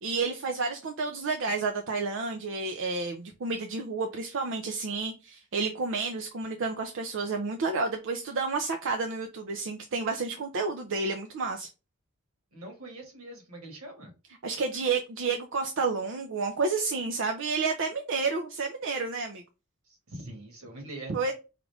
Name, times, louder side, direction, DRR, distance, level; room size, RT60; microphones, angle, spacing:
voice 1, 0.0-11.7 14.4-19.4 21.1-21.3, right 4 dB, 60° right, 0.5 m, -30 dB
voice 2, 12.5-14.1 20.1-21.3, right 1 dB, 80° right, 1.5 m, -43 dB
4.9 x 2.5 x 3.3 m
head